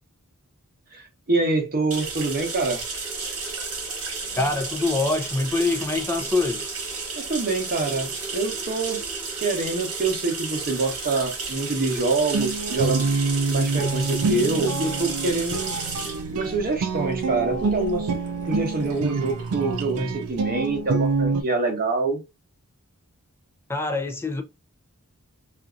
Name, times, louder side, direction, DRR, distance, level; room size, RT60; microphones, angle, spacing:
voice 1, 0.9-2.8 7.2-9.0 9.4-13.1 13.5-15.8 16.3-18.1 18.5-22.2, right 3 dB, 40° right, 0.9 m, -25 dB
sound 1, 1.9-21.3, right 4 dB, 75° right, 1.1 m, -33 dB
voice 2, 4.4-6.8 23.7-24.4, left 3 dB, 10° left, 0.5 m, -25 dB
Guitar, 12.3-21.4, right 4 dB, 90° right, 0.4 m, -27 dB
2.6 x 2.4 x 2.4 m
head